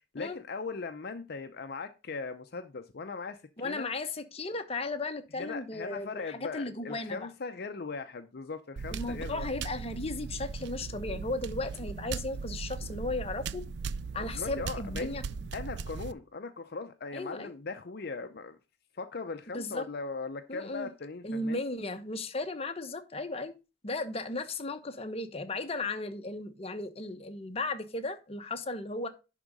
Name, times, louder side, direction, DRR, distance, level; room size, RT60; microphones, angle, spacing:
voice 1, 0.1-3.9 5.3-9.5 14.2-15.1 15.5-18.6 18.9-21.6, left 4 dB, 55° left, 0.6 m, -39 dB
voice 2, 3.6-7.3 8.9-13.6 14.1-15.2 17.1-17.5 19.5-19.8 20.5-20.9 21.2-23.5 23.8-29.1, left 2 dB, 30° left, 0.9 m, -35 dB
sound 1, 8.8-16.1, right 5 dB, 60° right, 0.4 m, -38 dB
11.0 x 3.7 x 5.2 m
head